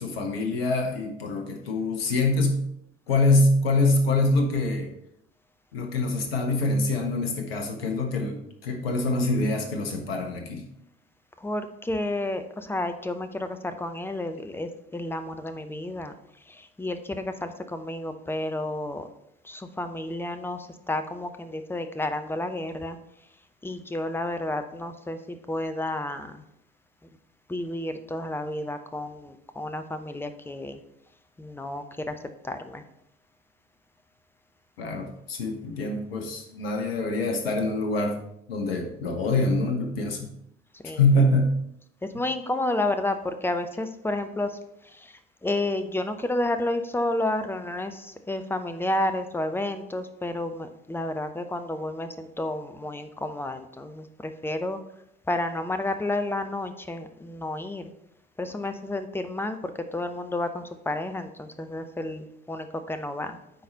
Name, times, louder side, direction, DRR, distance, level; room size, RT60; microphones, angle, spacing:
voice 1, 0.0-2.6 3.1-4.9 5.7-10.6 34.8-38.2 38.5-40.3 41.0-41.5, left 2 dB, 75° left, 4 dB, 1.0 m, -25 dB
voice 2, 11.4-16.1 16.5-19.1 19.4-23.0 23.6-26.4 27.5-30.8 31.4-32.2 32.4-32.8 40.8-41.0 42.1-44.5 44.9-45.1 45.4-54.8 55.3-57.9 58.4-63.4, left 1 dB, 5° left, 9 dB, 0.7 m, -31 dB
9.3 x 4.2 x 4.0 m, 0.77 s
figure-of-eight pair, 60°, 30 cm